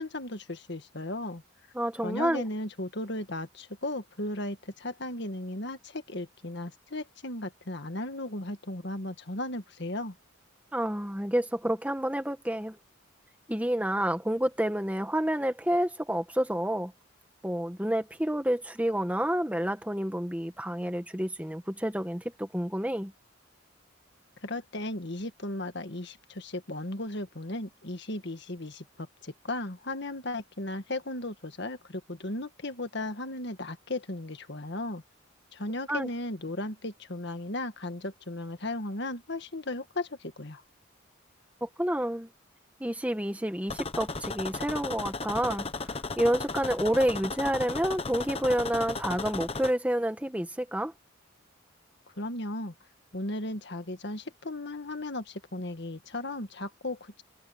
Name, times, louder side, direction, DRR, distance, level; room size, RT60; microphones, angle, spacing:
voice 1, 0.0-1.4 2.0-10.1 24.4-35.0 35.5-40.6 52.2-52.7 53.1-57.2, left 1 dB, 55° left, 1.8 m, -36 dB
voice 2, 1.7-2.4 10.7-12.8 13.5-16.9 17.4-23.1 35.9-36.1 41.6-42.3 42.8-50.9, right 1 dB, 5° right, 1.2 m, -29 dB
sound 1, 43.7-49.7, left 3 dB, 30° left, 1.1 m, -35 dB
head